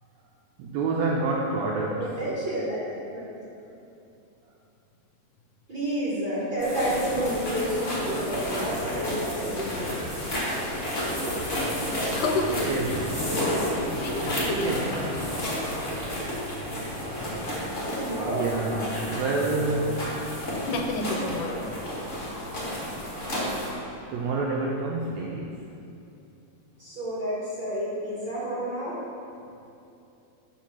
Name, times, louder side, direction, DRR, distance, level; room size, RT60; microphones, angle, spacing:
voice 1, 0.6-2.1 12.7-13.0 14.6-14.9 18.3-20.1 24.1-25.6, right 3 dB, 85° right, -2 dB, 1.6 m, -28 dB
voice 2, 2.0-2.8 3.1-3.4 5.7-10.0 17.8-18.5 26.8-29.0, right 1 dB, 50° right, -8 dB, 1.5 m, -30 dB
sound 1, 6.6-23.7, equal, 35° left, 1.3 m, -31 dB
voice 3, 12.1-12.8 13.3-13.7 14.0-14.8 20.7-21.7, left 2 dB, 80° left, 3 dB, 2.0 m, -29 dB
7.3 x 4.8 x 5.9 m, 2.7 s
omnidirectional pair, 3.8 m